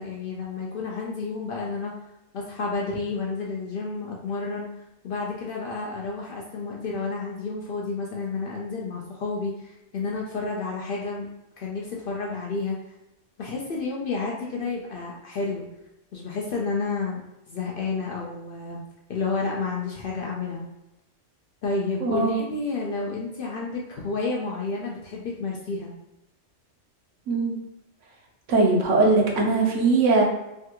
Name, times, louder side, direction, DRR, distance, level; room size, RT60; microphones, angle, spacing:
voice 1, 0.0-1.9 2.3-4.7 5.0-11.3 11.6-12.8 13.4-15.7 16.1-17.2 17.5-18.8 19.1-20.7 21.6-25.9, left 3 dB, 60° left, -2 dB, 0.6 m, -30 dB
voice 2, 22.0-22.4 27.3-27.5 28.5-30.2, right 3 dB, 75° right, 0 dB, 1.0 m, -20 dB
3.3 x 2.3 x 2.8 m, 0.93 s
omnidirectional pair, 1.3 m